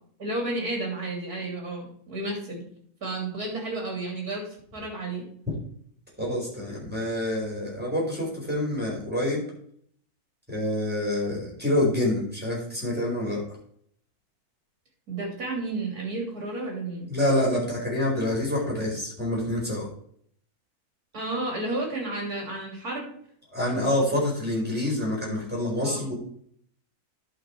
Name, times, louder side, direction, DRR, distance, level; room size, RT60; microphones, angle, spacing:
voice 1, 0.2-2.7 3.0-5.3 15.1-17.1 21.1-23.1 25.8-26.1, right 2 dB, 75° right, -1 dB, 3.6 m, -32 dB
voice 2, 6.2-9.4 10.5-13.4 17.1-19.9 23.5-26.1, left 1 dB, 5° right, -4 dB, 4.5 m, -27 dB
11.0 x 5.8 x 4.6 m, 0.63 s
omnidirectional pair, 1.6 m